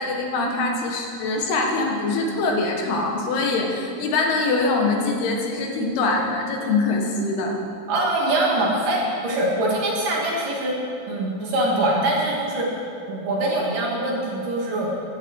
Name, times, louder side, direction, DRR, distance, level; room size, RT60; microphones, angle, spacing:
voice 1, 0.0-7.6, left 3 dB, 85° left, 1 dB, 3.8 m, -23 dB
voice 2, 7.9-10.7 11.1-12.7 13.1-14.9, right 1 dB, 60° right, -4 dB, 4.3 m, -23 dB
16.0 x 16.0 x 4.8 m, 2.6 s
omnidirectional pair, 4.4 m